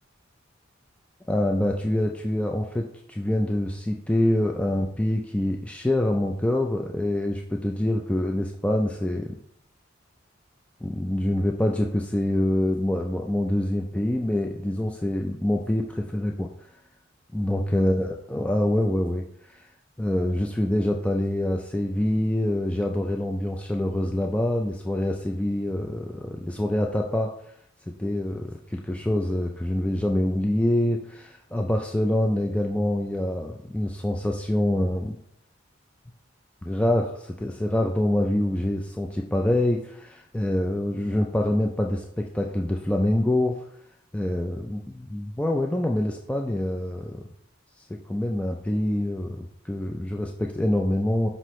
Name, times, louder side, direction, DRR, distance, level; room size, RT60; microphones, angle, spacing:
voice 1, 1.3-9.4 10.8-16.5 17.3-19.7 20.0-27.3 28.0-35.2 36.6-43.6 44.1-47.2 47.8-51.3, left 1 dB, 5° left, 1 dB, 0.3 m, -25 dB
5.8 x 5.4 x 3.1 m, 0.70 s
head